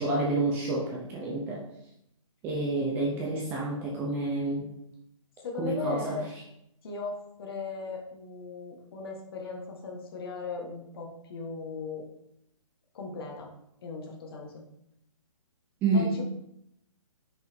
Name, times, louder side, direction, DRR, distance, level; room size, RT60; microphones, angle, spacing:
voice 1, 0.0-1.6 2.4-4.7 5.6-6.2 15.8-16.1, right 2 dB, 10° right, -3 dB, 0.6 m, -29 dB
voice 2, 5.4-6.3 6.8-12.0 12.9-13.5 13.8-14.6 15.9-16.2, left 3 dB, 45° left, 1 dB, 1.5 m, -37 dB
5.9 x 5.1 x 3.6 m, 0.79 s
hypercardioid pair, 160°, 18 cm